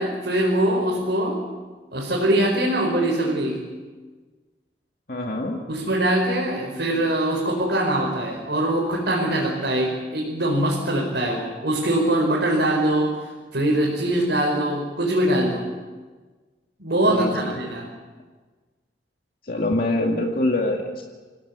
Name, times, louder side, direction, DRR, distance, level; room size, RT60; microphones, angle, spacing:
voice 1, 0.0-1.4 1.9-3.6 5.7-15.6 16.8-17.9, right 1 dB, 70° right, -3 dB, 5.1 m, -22 dB
voice 2, 5.1-5.6 17.1-17.6 19.5-21.0, left 1 dB, 55° left, 0 dB, 2.2 m, -24 dB
28.0 x 18.0 x 8.3 m, 1.4 s
head